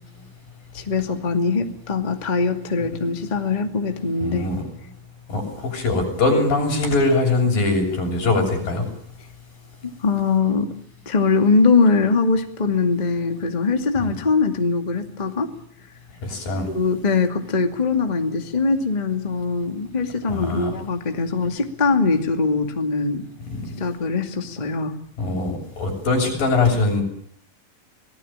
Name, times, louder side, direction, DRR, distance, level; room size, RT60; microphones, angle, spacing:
voice 1, 0.7-4.5 9.8-10.7 11.1-15.5 16.7-23.2 23.7-25.0, left 4 dB, 15° left, 5 dB, 1.9 m, -22 dB
voice 2, 4.2-4.6 5.3-8.8 14.0-14.2 16.2-16.7 20.3-20.7 23.5-23.6 25.2-27.0, left 3 dB, 80° left, 2 dB, 9.0 m, -22 dB
26.0 x 19.5 x 8.9 m, 0.66 s
omnidirectional pair, 3.9 m